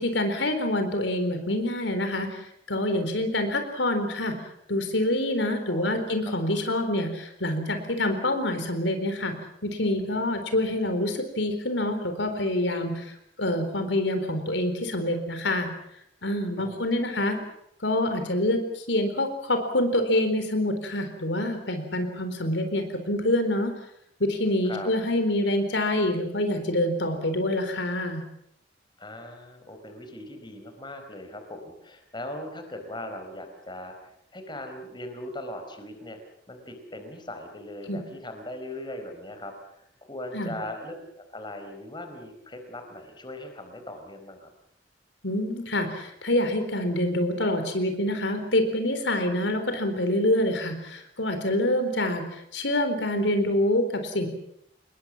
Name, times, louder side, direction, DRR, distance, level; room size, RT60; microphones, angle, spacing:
voice 1, 0.0-4.4 4.7-9.4 9.6-15.7 16.2-17.4 17.8-23.7 24.2-28.2 37.9-38.0 40.3-40.5 45.2-54.3, left 1 dB, 85° left, 7 dB, 4.2 m, -26 dB
voice 2, 5.7-6.1 16.6-17.4 24.6-24.9 29.0-36.2 36.5-44.5, left 1 dB, 25° left, 6 dB, 4.4 m, -40 dB
26.5 x 21.5 x 7.3 m, 0.74 s
head